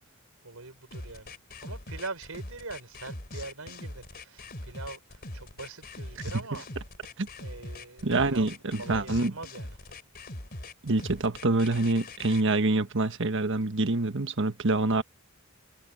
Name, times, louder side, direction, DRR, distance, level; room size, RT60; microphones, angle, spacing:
voice 1, 0.4-6.7 7.4-8.5 8.8-9.9, right 3 dB, 80° right, 4.7 m, -43 dB
sound 1, 0.9-12.4, left 2 dB, 45° left, 3.2 m, -42 dB
voice 2, 8.0-9.3 10.8-15.0, right 2 dB, 60° right, 1.3 m, -26 dB
head